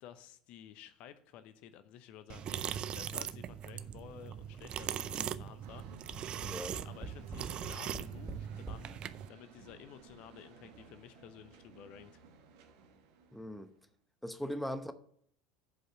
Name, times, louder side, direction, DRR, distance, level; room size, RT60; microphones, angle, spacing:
voice 1, 0.0-5.9 6.8-9.0 9.3-12.2, left 10 dB, 50° left, 0.8 m, -53 dB
sound 1, 2.3-9.3, right 9 dB, 40° right, 0.5 m, -40 dB
sound 2, 5.6-13.9, right 5 dB, 60° right, 1.4 m, -57 dB
Tap, 5.8-8.9 9.7-9.8 10.1-10.2, right 2 dB, 20° right, 2.7 m, -45 dB
voice 2, 6.4-6.8 13.3-13.7 14.2-14.9, equal, ahead, 0.8 m, -39 dB
7.6 x 5.5 x 7.1 m
figure-of-eight pair, 75°, 2 cm